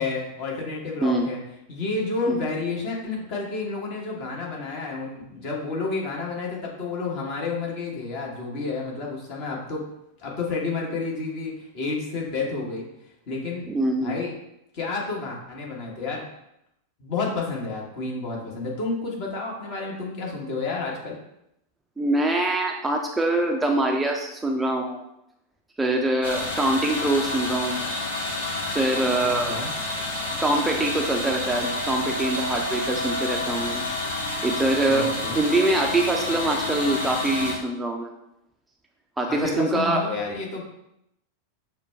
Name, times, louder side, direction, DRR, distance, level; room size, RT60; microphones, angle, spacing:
voice 1, 0.0-1.4 1.7-9.8 10.2-12.8 13.3-13.6 14.0-14.3 14.7-16.2 17.0-21.2 29.2-29.7 34.8-35.4 39.3-40.6, left 3 dB, 50° left, -2 dB, 1.3 m, -30 dB
voice 2, 13.7-14.1 22.0-25.0 25.8-28.0 28.6-29.6 30.4-33.8 34.4-35.1 35.3-38.1 39.2-40.0, right 2 dB, 10° right, 1 dB, 0.5 m, -24 dB
sound 1, 26.2-37.6, left 2 dB, 70° left, 0.9 m, -29 dB
6.3 x 2.2 x 3.4 m, 0.82 s
figure-of-eight pair, 90°, 0 cm